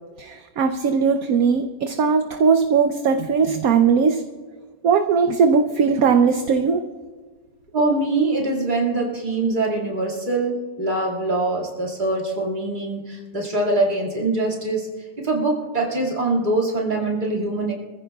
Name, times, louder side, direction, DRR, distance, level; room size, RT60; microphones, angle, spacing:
voice 1, 0.2-4.2 4.8-6.8, right 5 dB, 60° right, 6 dB, 1.0 m, -19 dB
voice 2, 7.7-14.9 15.2-17.7, right 2 dB, 25° right, -3 dB, 2.3 m, -23 dB
25.0 x 15.0 x 2.3 m, 1.4 s
omnidirectional pair, 1.9 m